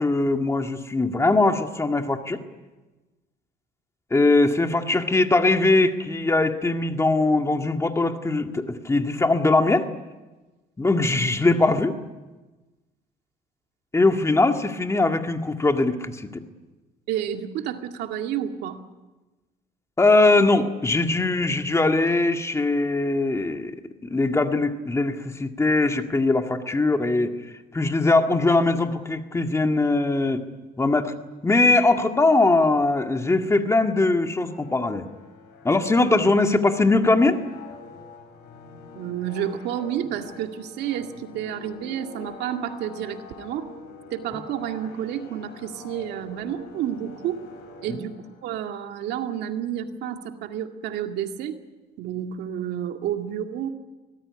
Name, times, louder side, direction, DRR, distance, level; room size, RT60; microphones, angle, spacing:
voice 1, 0.0-2.4 4.1-9.9 10.8-11.9 13.9-16.4 20.0-23.8 24.0-27.4 27.7-30.4 30.8-31.1 31.4-35.1 35.6-37.4 47.9-48.0, left 2 dB, 15° left, 5 dB, 1.9 m, -21 dB
voice 2, 17.1-18.8 38.9-43.7 44.1-47.4 47.8-51.6 52.0-53.7, right 10 dB, 80° right, 5 dB, 2.1 m, -30 dB
sound 1, 34.4-48.5, left 4 dB, 75° left, 7.1 m, -45 dB
24.0 x 18.5 x 9.8 m, 1.2 s
cardioid pair, 110°, 17 cm